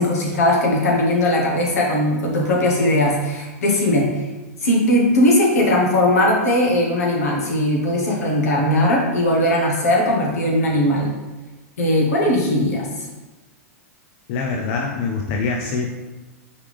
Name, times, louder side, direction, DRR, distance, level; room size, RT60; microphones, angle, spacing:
voice 1, 0.0-4.1 4.6-11.1 11.8-12.9, left 1 dB, 80° left, -1 dB, 1.3 m, -19 dB
voice 2, 14.3-15.9, left 4 dB, 50° left, 0 dB, 0.5 m, -24 dB
4.6 x 3.3 x 3.5 m, 1.2 s
hypercardioid pair, 115°, 8 cm